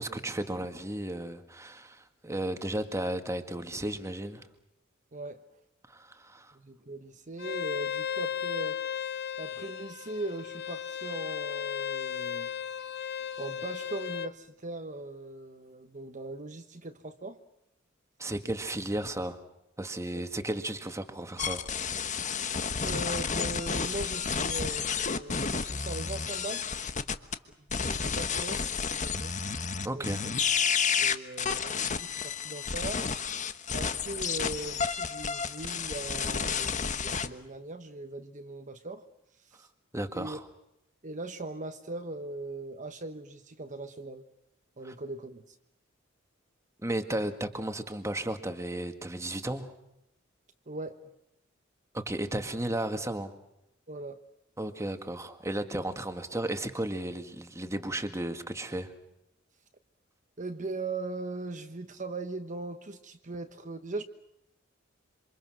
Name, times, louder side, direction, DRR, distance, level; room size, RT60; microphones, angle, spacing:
voice 1, 0.0-4.5 5.9-6.6 18.2-19.4 19.8-21.7 29.8-30.3 35.3-35.5 39.9-40.5 44.8-44.9 46.8-49.7 51.9-53.3 54.6-58.9, right 1 dB, 15° right, 7 dB, 1.9 m, -34 dB
voice 2, 5.1-5.4 6.5-8.8 9.4-12.5 13.4-17.4 20.1-20.2 22.8-26.7 27.7-29.3 29.9-30.3 31.0-33.1 33.7-39.1 39.4-39.7 40.1-40.4 41.0-44.3 44.8-45.5 50.7-51.0 53.9-54.2 60.4-64.0, right 2 dB, 40° right, 7 dB, 1.2 m, -39 dB
Bowed string instrument, 7.4-14.3, left 8 dB, 55° left, 1.0 m, -35 dB
sound 1, 21.4-27.3 27.7-37.3, left 6 dB, 40° left, 1.2 m, -31 dB
27.5 x 26.0 x 6.3 m, 0.85 s
head